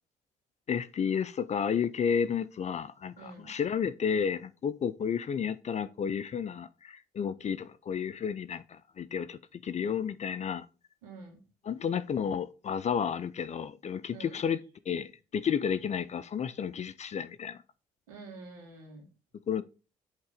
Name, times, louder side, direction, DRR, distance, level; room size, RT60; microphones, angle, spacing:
voice 1, 0.7-10.7 11.7-14.6 14.9-17.6 19.5-19.6, left 7 dB, 40° left, 0.5 m, -32 dB
voice 2, 3.2-3.5 11.0-11.4 14.1-14.4 18.1-19.1, right 3 dB, 85° right, 2.2 m, -47 dB
8.1 x 3.7 x 5.0 m
hypercardioid pair, 50°, 18 cm